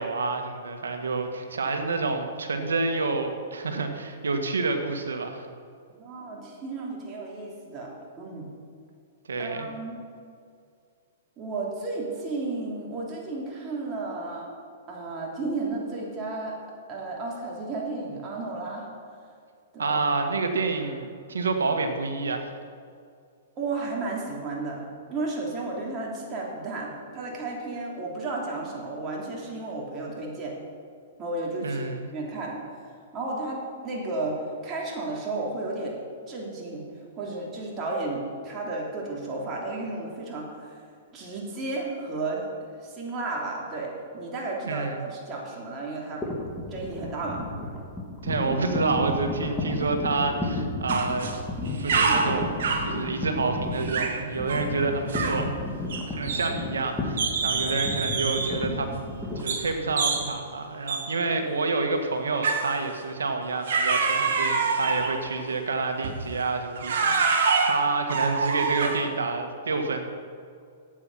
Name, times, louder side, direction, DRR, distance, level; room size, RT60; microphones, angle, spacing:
voice 1, 0.0-5.5 9.3-9.7 19.8-22.5 31.6-32.1 44.7-45.0 48.2-51.3 51.8-55.5 56.1-58.9 59.3-70.1, right 3 dB, 90° right, 5 dB, 1.6 m, -28 dB
voice 2, 6.0-8.5 9.4-10.0 11.4-14.5 14.9-16.6 16.9-18.9 19.7-20.0 23.6-30.6 31.2-31.8 32.1-36.0 36.3-36.8 37.2-40.8 41.1-42.5 42.8-46.2 46.7-47.4, right 2 dB, 30° right, -3 dB, 3.2 m, -33 dB
sound 1, 46.2-60.3, left 2 dB, 10° left, 2.7 m, -33 dB
sound 2, 50.9-51.4 51.7-52.9 53.8-54.2 54.5-54.7 55.1-55.5 55.9-56.8 57.2-58.6 59.5-59.7 60.0-60.3 60.9-61.1 62.4-62.8 63.7-65.2 66.0-66.2 66.8-69.1, right 4 dB, 70° right, 1.8 m, -26 dB
13.5 x 9.0 x 5.6 m, 2.3 s
hypercardioid pair, 130°, 0 cm